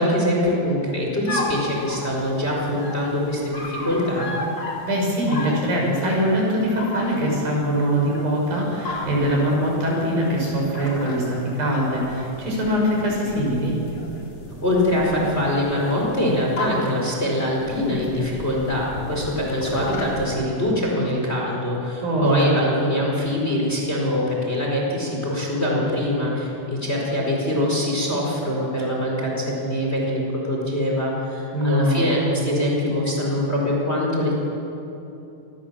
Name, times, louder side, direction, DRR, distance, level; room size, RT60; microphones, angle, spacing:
voice 1, 0.0-4.3 14.6-34.3, left 1 dB, 15° left, -2 dB, 4.6 m, -23 dB
sound 1, 1.3-20.3, left 2 dB, 40° left, 4.1 m, -35 dB
voice 2, 4.9-13.8 22.0-22.5 31.5-32.1, equal, 65° right, -1 dB, 7.9 m, -22 dB
27.0 x 21.0 x 7.4 m, 2.9 s
omnidirectional pair, 4.5 m